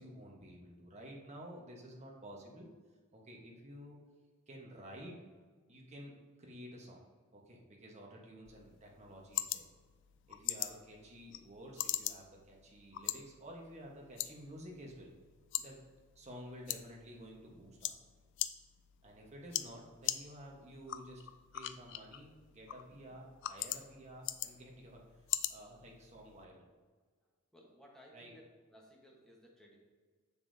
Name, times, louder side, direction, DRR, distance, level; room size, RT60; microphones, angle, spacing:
voice 1, 0.0-2.7 3.1-4.0 4.5-5.2 5.7-7.0 7.3-9.6 10.3-15.1 15.6-15.8 16.1-17.9 19.0-21.2 21.5-25.0 25.5-26.6 28.1-28.3, equal, 30° right, -2 dB, 1.2 m, -52 dB
sound 1, 8.4-26.4, left 13 dB, 55° left, 0.3 m, -43 dB
voice 2, 27.5-29.8, equal, 5° left, -3 dB, 1.2 m, -59 dB
6.9 x 6.8 x 2.7 m, 1.5 s
head